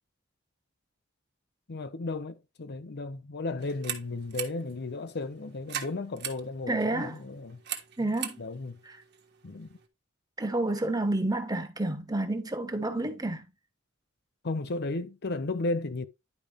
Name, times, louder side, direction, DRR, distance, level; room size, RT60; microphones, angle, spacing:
voice 1, 1.7-7.6 8.4-8.8 9.4-9.8 14.4-16.1, left 2 dB, 55° left, 0.7 m, -34 dB
sound 1, 3.6-9.9, right 9 dB, 55° right, 1.5 m, -41 dB
voice 2, 6.7-7.2 8.0-8.4 8.8-9.0 10.4-13.5, right 2 dB, 20° right, 1.3 m, -29 dB
11.0 x 5.0 x 3.5 m
head